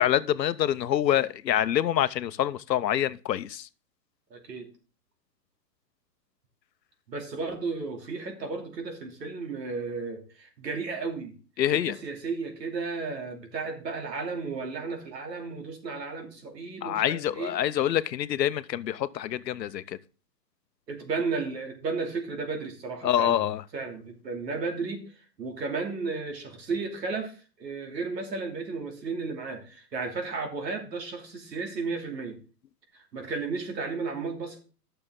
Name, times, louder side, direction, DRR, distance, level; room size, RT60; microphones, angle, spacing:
voice 1, 0.0-3.7 11.6-11.9 16.8-20.0 23.0-23.6, left 11 dB, 90° left, 0.8 m, -26 dB
voice 2, 4.3-4.7 7.1-11.3 11.7-17.6 20.9-23.5 23.7-32.4 33.1-34.6, right 4 dB, 90° right, 3.0 m, -34 dB
12.0 x 6.7 x 3.8 m
hypercardioid pair, 150°, 49 cm